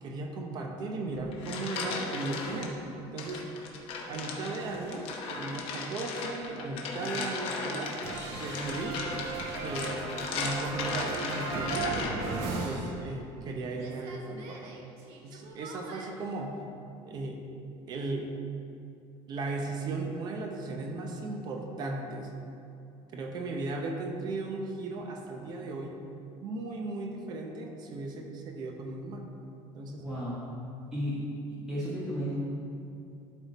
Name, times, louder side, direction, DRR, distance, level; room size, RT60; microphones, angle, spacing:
voice 1, 0.0-2.8 3.1-3.4 4.1-8.0 8.3-9.0 9.6-10.0 10.3-12.0 12.6-14.7 15.2-16.6 17.0-17.4 17.9-18.3 19.3-22.3 23.1-26.0 26.4-29.2 29.7-30.0, right 3 dB, 35° right, 3 dB, 0.7 m, -36 dB
sound 1, 1.1-2.7 3.2-12.4, left 4 dB, 55° left, 0.9 m, -37 dB
sound 2, 8.0-13.5 13.7-16.1, right 3 dB, 65° right, 0.9 m, -37 dB
voice 2, 29.9-30.4 30.9-31.2 31.7-32.3, equal, 5° right, -10 dB, 1.3 m, -33 dB
11.5 x 3.8 x 4.1 m, 2.6 s
cardioid pair, 170°, 11 cm